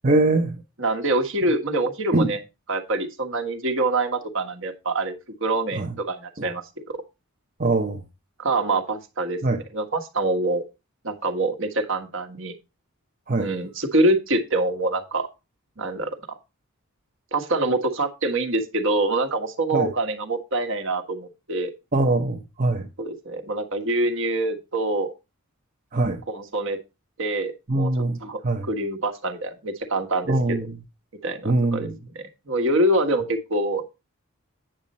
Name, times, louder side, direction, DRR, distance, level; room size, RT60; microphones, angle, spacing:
voice 1, 0.0-0.6 2.1-2.3 5.7-5.9 6.4-6.5 7.6-8.0 9.4-9.6 13.3-13.5 19.7-19.9 21.9-22.9 25.9-26.2 27.7-28.2 28.4-28.7 30.3-30.8 31.4-32.0, right 2 dB, 40° right, 0.9 m, -22 dB
voice 2, 0.8-2.4 2.7-5.1 5.4-7.0 8.4-9.4 9.7-10.6 11.0-12.5 13.4-15.3 15.8-16.4 17.3-21.7 23.0-25.1 26.3-26.8 27.2-27.9 28.2-28.4 28.7-30.3 31.2-31.9 32.1-33.8, right 2 dB, 60° right, 1.5 m, -25 dB
9.0 x 6.6 x 4.1 m
head